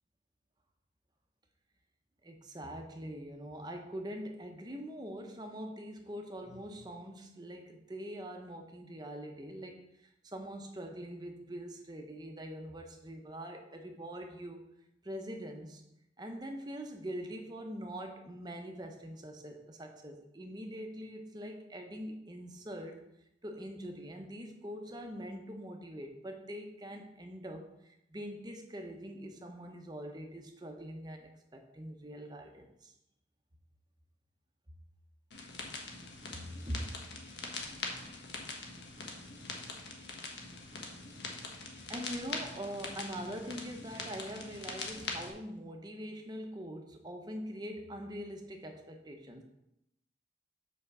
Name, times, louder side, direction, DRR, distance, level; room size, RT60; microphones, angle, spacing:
voice 1, 2.2-9.9 10.2-14.6 15.0-15.8 16.2-23.0 23.4-32.9 36.3-37.0 41.9-49.4, equal, 25° right, 4 dB, 0.9 m, -43 dB
sound 1, 35.3-45.3, left 3 dB, 75° left, 1.4 m, -43 dB
5.8 x 5.3 x 6.7 m, 0.83 s
head